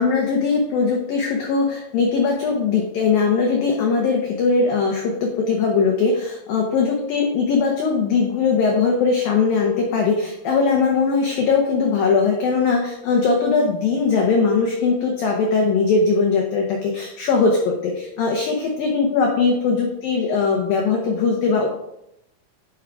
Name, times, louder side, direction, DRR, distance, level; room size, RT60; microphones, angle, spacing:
voice 1, 0.0-21.7, left 4 dB, 85° left, 1 dB, 2.0 m, -20 dB
11.0 x 5.1 x 4.8 m, 0.83 s
omnidirectional pair, 5.7 m